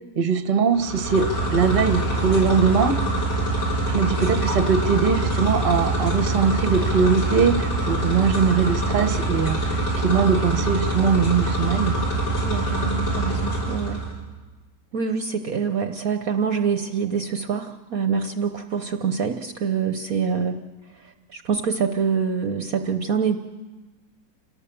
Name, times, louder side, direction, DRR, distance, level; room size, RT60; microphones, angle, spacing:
voice 1, 0.2-3.0 3.9-9.6 10.0-12.0, right 5 dB, 35° right, 9 dB, 1.1 m, -21 dB
sound 1, 0.7-14.1, right 1 dB, 65° left, 6.2 m, -24 dB
voice 2, 12.4-14.0 14.9-20.6 21.3-23.4, right 6 dB, 60° right, 7 dB, 1.1 m, -25 dB
28.0 x 18.0 x 6.9 m, 1.3 s
omnidirectional pair, 2.0 m